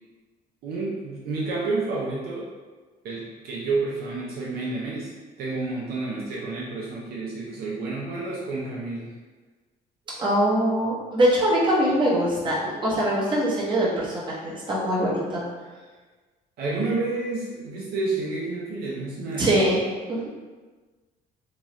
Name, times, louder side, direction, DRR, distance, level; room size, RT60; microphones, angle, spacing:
voice 1, 0.6-2.5 3.0-5.1 5.4-9.1 16.6-19.6, right 3 dB, 65° right, -4 dB, 0.6 m, -30 dB
voice 2, 10.2-15.4 19.4-19.8 20.1-20.3, right 1 dB, 30° right, -6 dB, 1.0 m, -23 dB
3.0 x 2.3 x 3.0 m, 1.3 s
cardioid pair, 110°, 17 cm